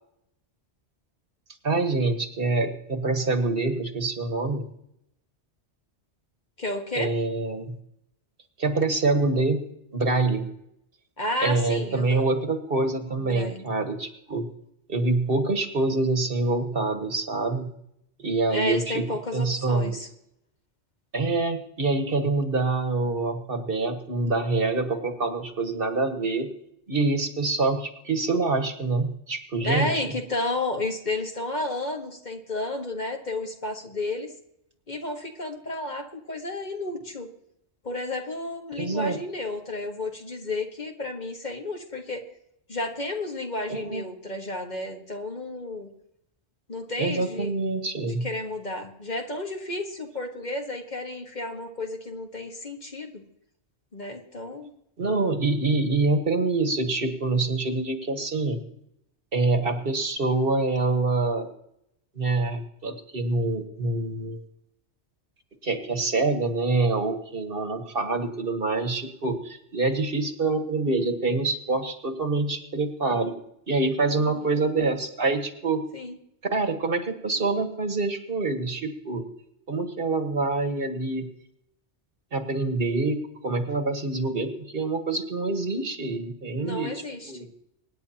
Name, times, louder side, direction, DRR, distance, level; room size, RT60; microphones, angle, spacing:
voice 1, 1.6-4.6 6.9-7.8 8.6-9.7 9.9-10.5 11.4-14.5 14.9-17.7 18.2-19.0 19.3-20.0 21.1-26.5 26.9-30.0 38.8-39.2 43.7-44.0 47.0-48.3 55.0-58.6 59.3-61.5 62.1-64.4 65.6-73.3 73.7-75.8 76.5-79.2 79.7-81.3 82.3-86.9 87.3-87.5, right 3 dB, 55° right, 6 dB, 1.6 m, -26 dB
voice 2, 6.6-7.1 11.2-12.3 13.2-13.6 18.5-20.1 29.6-34.3 34.9-37.3 37.8-42.2 42.7-45.9 46.7-47.5 48.0-53.2 53.9-54.7 74.1-74.6 75.9-76.2 86.6-87.4, left 2 dB, 40° left, 3 dB, 1.5 m, -32 dB
24.5 x 10.0 x 2.9 m, 0.76 s
omnidirectional pair, 1.2 m